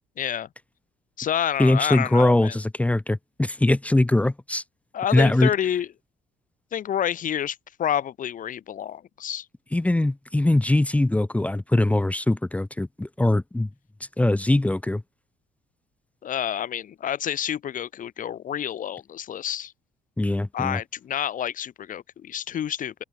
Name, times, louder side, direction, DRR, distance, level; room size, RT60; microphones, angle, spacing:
voice 1, 0.2-0.5 1.2-2.5 4.9-5.9 6.7-9.4 16.2-19.7 20.5-22.9, left 10 dB, 50° left, 2.6 m, -28 dB
voice 2, 1.6-4.6 5.1-5.5 9.7-13.7 14.2-15.0 20.2-20.8, left 1 dB, 10° left, 0.8 m, -21 dB
open air
cardioid pair, 110°, 17 cm